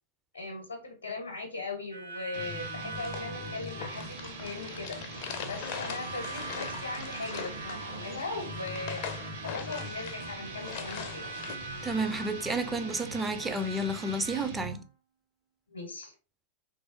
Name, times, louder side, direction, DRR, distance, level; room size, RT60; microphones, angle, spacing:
voice 1, 0.3-11.2 15.7-16.1, left 3 dB, 75° left, 0.7 m, -39 dB
Harmonica, 1.9-14.5, right 3 dB, 80° right, 0.6 m, -43 dB
sound 1, 2.3-14.9, right 1 dB, 55° right, 1.0 m, -42 dB
sound 2, 2.9-11.6, left 7 dB, 45° left, 0.5 m, -42 dB
voice 2, 11.8-14.8, right 2 dB, 10° right, 0.4 m, -31 dB
3.3 x 2.6 x 2.7 m
figure-of-eight pair, 90°, 0 cm